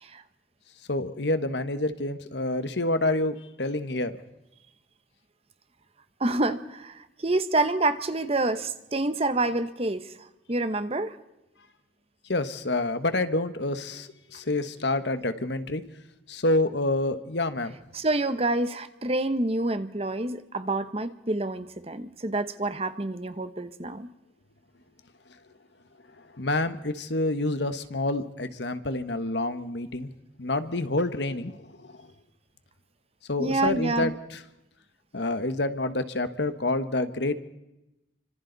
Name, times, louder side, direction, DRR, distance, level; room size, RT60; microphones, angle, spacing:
voice 1, 0.9-4.1 12.3-15.8 16.3-17.8 26.2-30.1 30.4-32.1 33.3-34.4 35.1-37.4, left 2 dB, 70° left, 10 dB, 1.4 m, -28 dB
voice 2, 6.2-11.2 17.9-24.1 33.4-34.1, right 2 dB, 35° right, 11 dB, 1.0 m, -28 dB
29.5 x 25.5 x 4.1 m, 0.94 s
head